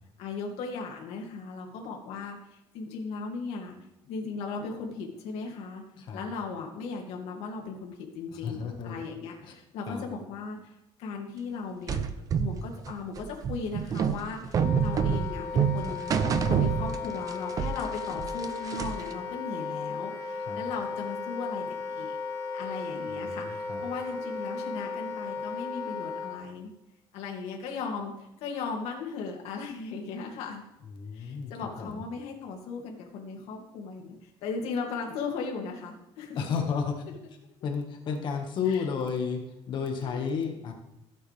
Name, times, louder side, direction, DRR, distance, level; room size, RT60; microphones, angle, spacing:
voice 1, 0.2-3.7 4.0-5.8 6.1-12.0 12.4-16.1 16.4-22.2 22.5-26.7 27.1-30.6 31.1-36.4 38.7-38.8 40.0-40.3, left 4 dB, 75° left, 1 dB, 2.7 m, -37 dB
voice 2, 8.3-9.0 9.4-9.5 9.9-10.1 20.4-20.6 23.1-23.4 23.7-23.8 30.9-31.5 31.8-32.0 36.3-37.0 37.6-40.7, left 6 dB, 45° left, 3 dB, 1.9 m, -32 dB
sound 1, 11.9-17.3 17.6-19.1, right 7 dB, 35° right, 0.7 m, -27 dB
Wind instrument woodwind instrument, 14.5-26.5, left 5 dB, 25° left, 3.2 m, -35 dB
16.5 x 8.8 x 3.6 m, 0.90 s
cardioid pair, 170°, 11 cm